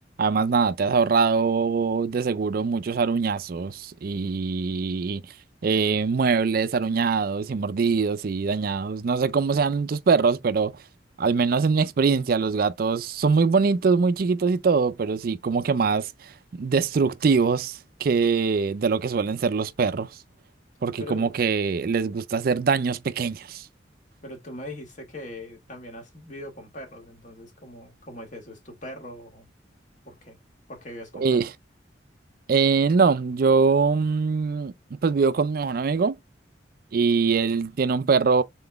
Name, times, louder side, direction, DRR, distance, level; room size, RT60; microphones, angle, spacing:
voice 1, 0.2-5.2 5.6-10.7 11.2-20.1 20.8-23.7 31.1-31.5 32.5-34.7 35.0-36.2 36.9-38.4, right 5 dB, 50° right, 0.4 m, -23 dB
voice 2, 21.0-21.4 24.2-29.5 30.0-30.4 30.7-31.4, left 1 dB, 40° left, 1.7 m, -41 dB
3.9 x 3.9 x 3.4 m
head